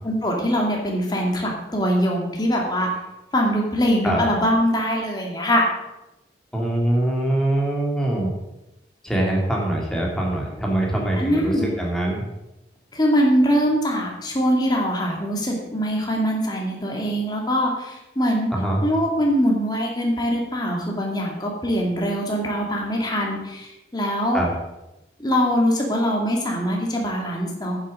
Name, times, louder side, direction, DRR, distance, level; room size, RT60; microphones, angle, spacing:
voice 1, 0.0-2.9 3.3-5.7 11.1-11.7 12.9-18.5 18.8-24.4 25.2-27.8, equal, 20° left, -1 dB, 2.4 m, -22 dB
voice 2, 6.5-8.3 9.0-12.2 18.5-18.8 24.3-24.5, right 1 dB, 5° left, -2 dB, 2.5 m, -23 dB
9.5 x 7.6 x 6.5 m, 0.95 s
head